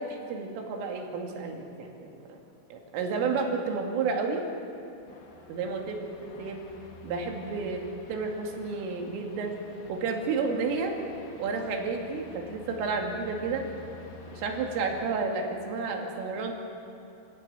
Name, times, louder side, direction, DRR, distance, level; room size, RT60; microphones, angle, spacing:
voice 1, 0.0-2.4 2.7-4.4 5.5-6.6 7.0-7.8 8.1-9.6 9.9-11.0 11.4-13.7 14.3-16.5, right 4 dB, 80° right, 1 dB, 4.9 m, -31 dB
sound 1, 4.9-15.1, left 4 dB, 80° left, 4.8 m, -50 dB
28.0 x 16.0 x 7.8 m, 2.9 s
omnidirectional pair, 5.8 m